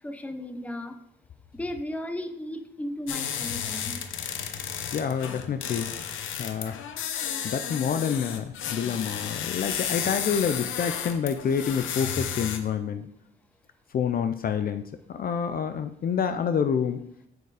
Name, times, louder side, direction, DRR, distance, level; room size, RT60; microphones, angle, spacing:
voice 1, 0.0-1.0 1.5-4.0, left 1 dB, 5° left, 7 dB, 0.9 m, -35 dB
sound 1, 3.1-12.6, left 8 dB, 80° left, 0.9 m, -33 dB
voice 2, 4.9-5.9 6.4-6.8 7.4-13.1 13.9-14.8 15.1-17.0, left 7 dB, 50° left, 9 dB, 0.5 m, -28 dB
8.2 x 4.6 x 4.9 m, 0.71 s
cardioid pair, 90°, 20 cm